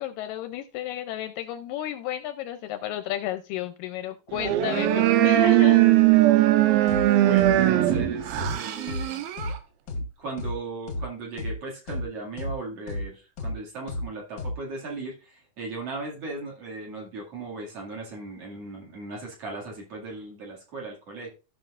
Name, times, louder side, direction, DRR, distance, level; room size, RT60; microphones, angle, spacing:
voice 1, 0.0-6.0, left 11 dB, 80° left, 9 dB, 2.1 m, -32 dB
sound 1, 4.3-9.6, right 14 dB, 90° right, 2.6 m, -20 dB
sound 2, 6.9-7.0 7.4-7.5 7.9-8.0 8.4-8.5 8.9-9.0 9.4-9.5 9.9-10.0 10.4-10.5 10.9-11.0 11.4-11.5 11.9-12.0 12.4-12.5 12.9-13.0 13.4-13.5 13.9-14.0 14.4-14.5, left 2 dB, 55° left, 1.2 m, -31 dB
voice 2, 7.2-9.2 10.2-15.1 15.6-21.3, right 3 dB, 45° right, -1 dB, 2.8 m, -37 dB
15.5 x 6.0 x 2.4 m, 0.30 s
omnidirectional pair, 4.3 m